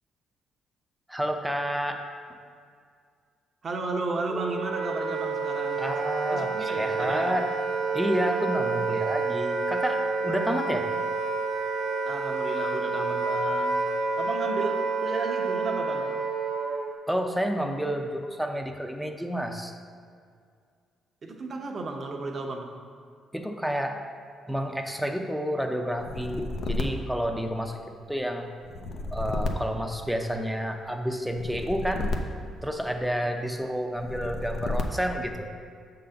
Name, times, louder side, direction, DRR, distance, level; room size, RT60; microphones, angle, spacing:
voice 1, 1.1-2.1 5.8-7.5 7.9-10.9 17.1-19.7 23.3-24.0 24.5-28.5 29.1-32.1 32.6-35.5, equal, ahead, 4 dB, 0.6 m, -30 dB
voice 2, 3.6-5.8 6.3-7.3 12.0-13.8 14.2-16.1 21.2-22.7, right 3 dB, 45° right, 2 dB, 0.8 m, -33 dB
Wind instrument woodwind instrument, 4.3-16.9, right 4 dB, 60° right, 1.2 m, -29 dB
sound 1, 26.0-27.9 28.6-30.6 31.3-33.2 34.0-35.3, left 2 dB, 60° left, 0.6 m, -33 dB
6.7 x 3.9 x 5.6 m, 2.2 s
cardioid pair, 90°, 0 cm